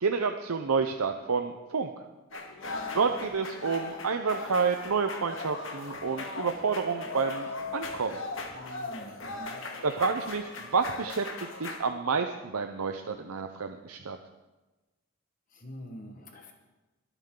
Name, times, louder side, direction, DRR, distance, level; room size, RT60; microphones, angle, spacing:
voice 1, 0.0-1.9 2.9-8.2 9.8-14.2, right 5 dB, 90° right, 6 dB, 0.7 m, -29 dB
sound 1, 2.3-11.8, left 3 dB, 60° left, 1.9 m, -39 dB
voice 2, 2.7-3.1 8.5-9.6 15.5-16.5, equal, 40° left, 3 dB, 1.4 m, -46 dB
23.0 x 9.1 x 3.9 m, 1.1 s
head